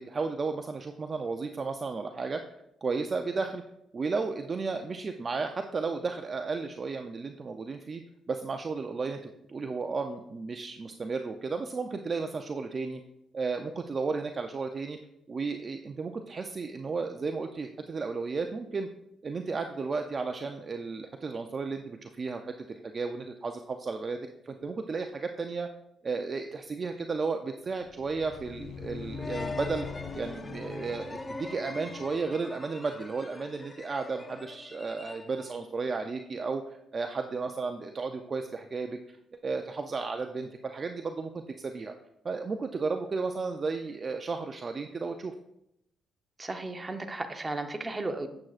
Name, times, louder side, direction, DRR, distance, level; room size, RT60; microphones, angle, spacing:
voice 1, 0.0-2.4 2.8-3.6 3.9-8.0 8.3-13.0 13.3-15.0 15.3-18.9 19.2-24.2 24.4-25.7 26.0-29.9 30.1-39.2 39.4-41.9 42.2-45.3, right 4 dB, 35° right, 6 dB, 0.4 m, -33 dB
sound 1, 27.8-32.4, left 5 dB, 70° left, 0.4 m, -42 dB
sound 2, 29.1-35.6, left 2 dB, 25° left, 0.7 m, -42 dB
voice 2, 46.4-48.3, right 2 dB, 20° right, 6 dB, 0.8 m, -34 dB
8.8 x 7.3 x 2.4 m, 0.81 s
cardioid pair, 90°, 0 cm